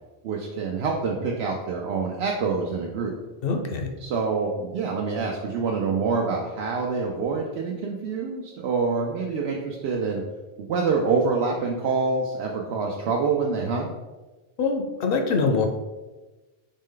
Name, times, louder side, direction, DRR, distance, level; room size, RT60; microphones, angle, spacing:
voice 1, 0.2-3.1 4.0-10.2 10.6-13.9, right 4 dB, 85° right, 0 dB, 0.8 m, -26 dB
voice 2, 3.4-3.9 14.6-15.7, left 4 dB, 70° left, 4 dB, 0.8 m, -24 dB
4.2 x 3.2 x 3.7 m, 1.2 s
omnidirectional pair, 1.0 m